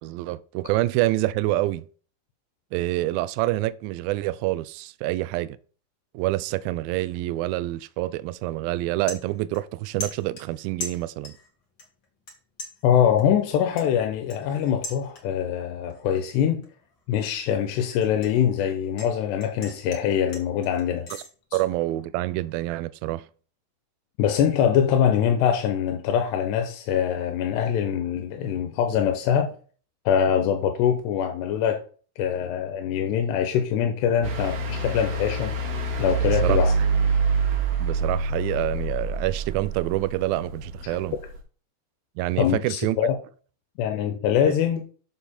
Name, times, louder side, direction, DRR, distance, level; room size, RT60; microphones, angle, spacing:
voice 1, 0.0-1.9 2.7-5.6 6.1-11.3 21.5-23.2 36.4-36.6 37.8-41.2 42.2-43.0 44.4-44.5, right 16 dB, 85° right, 2.1 m, -27 dB
sound 1, 8.1-8.4 8.7-9.7 10.0-11.5 11.8-12.3 12.6-15.5 15.9-16.2 16.6-19.1 19.4-21.3, left 2 dB, 35° left, 2.0 m, -40 dB
voice 2, 12.8-16.6 17.1-21.1 24.2-29.5 30.1-31.8 32.2-35.5 36.0-36.7 40.9-41.0 42.4-43.2 43.8-44.8, left 9 dB, 85° left, 3.1 m, -23 dB
sound 2, 34.2-41.4, right 4 dB, 55° right, 3.5 m, -26 dB
7.6 x 6.8 x 4.3 m
omnidirectional pair, 4.8 m